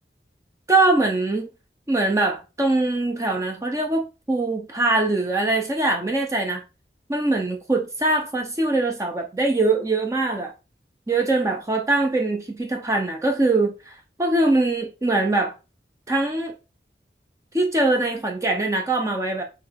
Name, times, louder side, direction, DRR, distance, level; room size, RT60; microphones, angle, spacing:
voice 1, 0.7-1.5 1.9-6.6 7.1-10.5 11.1-15.5 16.1-16.5 17.5-19.4, right 2 dB, 15° right, 0.5 m, -22 dB
4.3 x 3.1 x 3.3 m
head